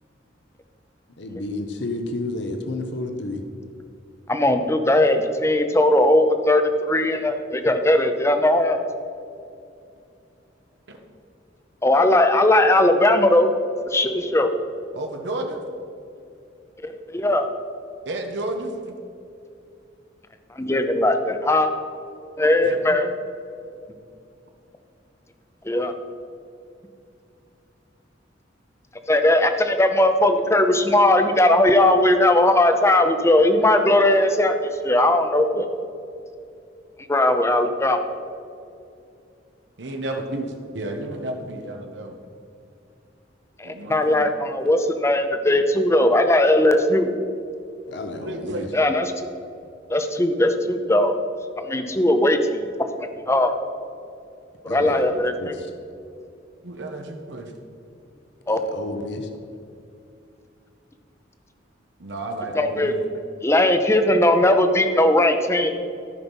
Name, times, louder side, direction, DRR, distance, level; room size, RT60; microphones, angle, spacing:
voice 1, 1.2-3.4 47.9-48.7 54.7-55.7 58.5-59.3, left 2 dB, 65° left, 5 dB, 0.9 m, -31 dB
voice 2, 4.3-8.8 11.8-13.5 13.9-14.5 16.8-17.5 20.5-21.7 22.4-23.1 25.6-25.9 29.1-35.7 37.1-38.0 43.6-47.1 48.7-49.1 49.9-51.2 51.6-52.7 53.0-53.5 54.6-55.6 58.5-58.6 62.5-62.9 63.4-65.7, left 1 dB, 15° left, 7 dB, 0.6 m, -19 dB
voice 3, 14.9-15.6 18.1-19.0 22.6-22.8 39.8-40.4 40.7-42.2 43.6-44.3 48.2-48.7 56.6-57.5 62.0-63.0, right 1 dB, 70° right, 3 dB, 1.0 m, -31 dB
13.5 x 5.8 x 5.4 m, 2.5 s
head